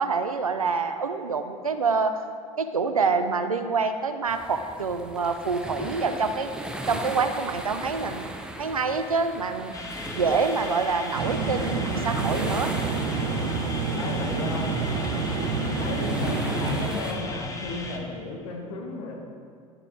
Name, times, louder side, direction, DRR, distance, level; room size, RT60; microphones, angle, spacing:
voice 1, 0.0-2.2 2.6-6.5 6.9-8.3 8.6-9.7 10.1-12.7, right 4 dB, 85° right, 8 dB, 0.5 m, -26 dB
sound 1, 4.3-17.1, right 1 dB, 5° right, 0.7 m, -38 dB
sound 2, 9.7-18.0, left 2 dB, 20° left, 1.1 m, -38 dB
sound 3, 11.1-16.9, right 4 dB, 60° right, 0.9 m, -28 dB
voice 2, 13.1-13.6 14.0-14.9 15.7-19.2, left 3 dB, 65° left, 0 dB, 1.4 m, -34 dB
11.0 x 6.5 x 3.6 m, 2.1 s
figure-of-eight pair, 70°, 18 cm